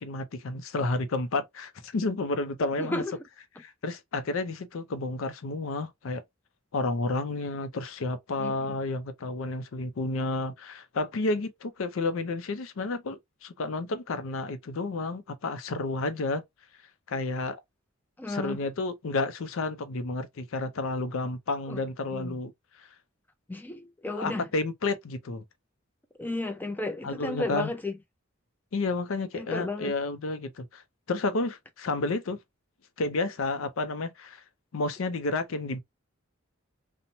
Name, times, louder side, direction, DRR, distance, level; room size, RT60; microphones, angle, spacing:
voice 1, 0.0-3.0 3.6-6.2 6.7-16.4 17.1-17.6 18.3-22.5 22.8-22.9 24.2-25.4 27.0-27.7 28.7-30.8 31.1-32.4 33.0-34.4 34.7-35.8, left 3 dB, 80° left, 0.5 m, -31 dB
voice 2, 2.8-3.2 8.4-8.7 18.2-18.6 21.7-21.8 22.1-22.4 23.5-24.5 26.2-27.9 29.3-29.9, left 2 dB, 10° left, 0.4 m, -33 dB
2.9 x 2.1 x 2.6 m
head